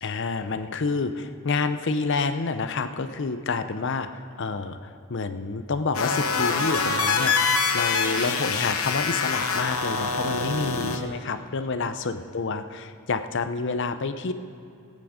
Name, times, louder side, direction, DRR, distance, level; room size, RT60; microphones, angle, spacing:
voice 1, 0.0-14.3, left 4 dB, 55° left, 10 dB, 0.6 m, -28 dB
sound 1, 5.9-11.0, left 5 dB, 75° left, 1.0 m, -25 dB
18.5 x 8.4 x 5.0 m, 2.6 s
head